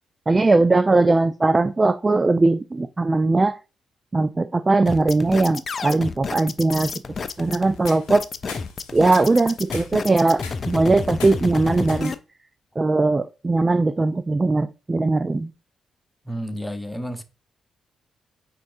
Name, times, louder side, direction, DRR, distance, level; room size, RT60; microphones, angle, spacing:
voice 1, 0.3-3.6 4.1-6.9 7.4-8.2 8.9-12.1 12.8-15.5, right 3 dB, 30° right, 0.3 m, -19 dB
sound 1, 4.9-12.1, left 4 dB, 50° left, 0.4 m, -30 dB
sound 2, 7.1-12.1, left 5 dB, 90° left, 0.8 m, -44 dB
voice 2, 16.3-17.2, equal, 5° left, 0.8 m, -31 dB
4.4 x 4.2 x 2.6 m
hypercardioid pair, 40°, 0 cm